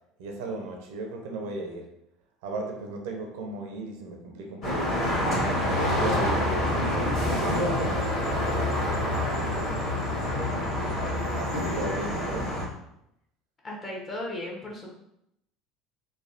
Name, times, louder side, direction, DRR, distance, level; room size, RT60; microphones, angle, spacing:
voice 1, 0.2-1.9 2.4-4.8 5.9-6.7 7.4-8.1 11.4-12.5, right 2 dB, 70° right, 2 dB, 0.5 m, -35 dB
sound 1, 4.6-12.7, left 1 dB, 55° left, 1.2 m, -27 dB
voice 2, 10.6-11.0 13.6-14.9, left 1 dB, 35° left, -2 dB, 0.9 m, -37 dB
3.3 x 2.2 x 2.5 m, 0.79 s
hypercardioid pair, 70°, 0 cm